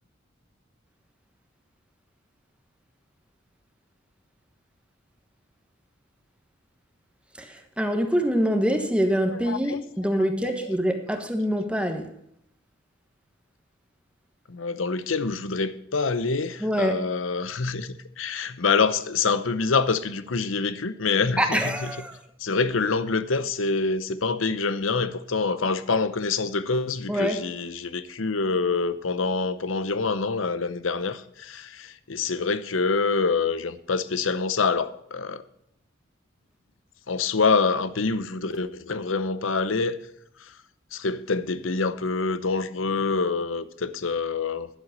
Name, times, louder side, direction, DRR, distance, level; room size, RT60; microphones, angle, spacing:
voice 1, 7.8-12.1 16.6-17.0 21.4-22.1 27.1-27.4, equal, 5° right, 1.3 m, -24 dB
voice 2, 9.3-9.8 10.4-10.7 14.5-21.9 22.4-35.4 37.1-40.0 40.9-44.7, left 4 dB, 80° left, 0.8 m, -26 dB
11.0 x 7.7 x 6.6 m
head